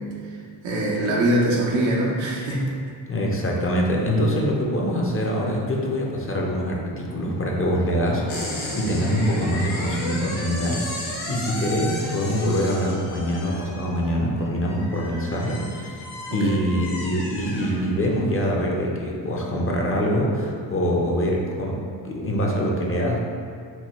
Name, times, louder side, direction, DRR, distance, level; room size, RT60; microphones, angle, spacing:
voice 1, 0.6-2.6 16.3-16.5, right 1 dB, 90° right, -3 dB, 1.0 m, -22 dB
voice 2, 3.1-16.0 16.3-23.2, equal, 30° left, -2 dB, 0.7 m, -24 dB
sound 1, 8.3-18.2, left 2 dB, 60° left, 1.2 m, -34 dB
4.6 x 2.2 x 4.2 m, 2.3 s
cardioid pair, 85°, 44 cm